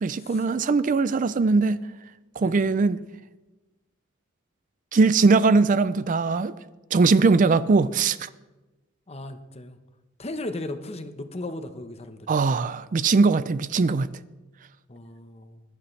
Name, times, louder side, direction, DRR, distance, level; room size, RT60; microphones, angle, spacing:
voice 1, 0.0-1.8 2.4-3.0 4.9-6.5 6.9-8.3 12.3-14.1, right 4 dB, 40° right, 0.4 m, -20 dB
voice 2, 9.1-9.8 10.2-12.3 14.9-15.6, left 2 dB, 30° left, 0.9 m, -36 dB
21.0 x 11.5 x 3.2 m
head